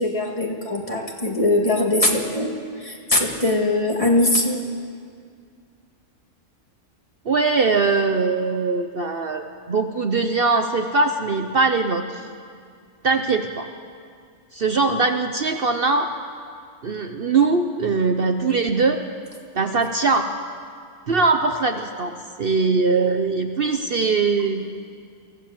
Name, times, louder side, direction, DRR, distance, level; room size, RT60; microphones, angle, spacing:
voice 1, 0.0-4.6, left 1 dB, 25° left, 0 dB, 2.2 m, -21 dB
voice 2, 7.3-12.3 13.0-13.7 14.5-16.1 16.8-19.0 19.5-20.3 21.1-24.6, right 4 dB, 50° right, 6 dB, 1.0 m, -21 dB
24.0 x 15.5 x 7.5 m, 2.2 s
omnidirectional pair, 1.4 m